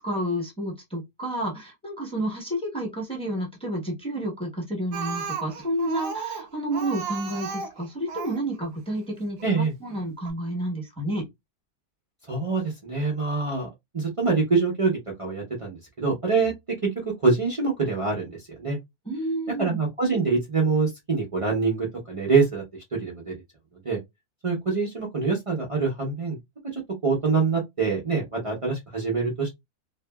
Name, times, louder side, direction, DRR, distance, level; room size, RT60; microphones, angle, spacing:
voice 1, 0.0-9.4 9.8-11.2 19.1-19.8, right 1 dB, 5° left, 0.6 m, -30 dB
Speech, 4.9-8.4 9.4-9.5 9.9-10.0 10.2-10.3, right 6 dB, 80° right, 1.1 m, -34 dB
voice 2, 9.4-9.7 12.3-13.7 13.9-16.5 16.8-16.9 17.2-18.8 19.6-23.3 23.8-24.0 24.4-26.4 26.7-29.5, right 4 dB, 60° right, 0.3 m, -25 dB
2.7 x 2.6 x 2.2 m
omnidirectional pair, 1.7 m